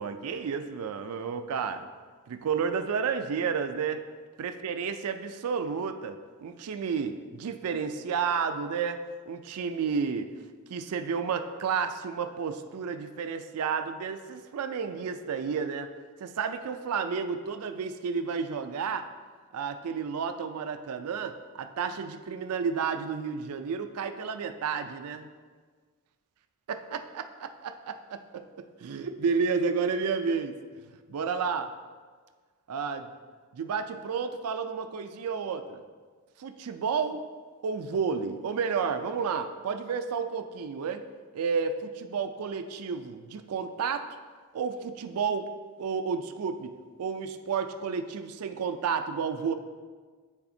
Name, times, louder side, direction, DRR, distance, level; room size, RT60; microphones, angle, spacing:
voice 1, 0.0-1.8 2.3-4.0 4.4-10.3 10.7-15.9 16.2-19.1 19.5-25.3 26.7-28.4 28.8-30.6 31.1-31.7 32.7-33.1 33.5-35.8 36.4-37.2 37.6-41.0 41.3-44.0 44.5-45.5 45.8-46.7 47.0-49.5, right 6 dB, 75° right, 8 dB, 0.4 m, -31 dB
9.7 x 4.1 x 2.6 m, 1.5 s
head